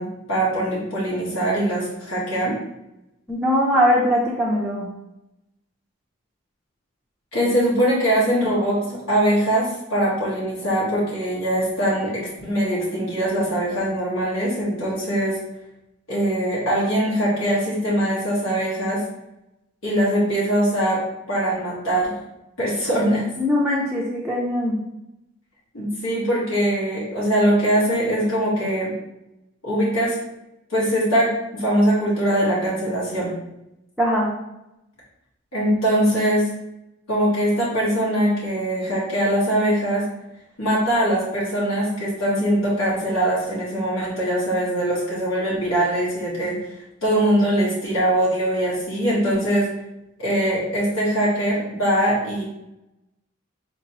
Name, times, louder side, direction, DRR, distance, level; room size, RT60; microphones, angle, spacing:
voice 1, 0.0-2.5 7.3-15.4 16.1-19.0 19.8-21.0 21.3-22.1 22.6-23.2 25.7-28.9 29.6-30.2 30.7-33.3 35.5-36.5 37.1-40.1 40.6-46.6 47.0-49.7 50.2-52.4, right 1 dB, 80° left, -7 dB, 1.4 m, -22 dB
voice 2, 3.3-4.9 23.4-24.8 34.0-34.3, equal, ahead, -6 dB, 0.5 m, -21 dB
4.4 x 3.0 x 2.9 m, 0.90 s
head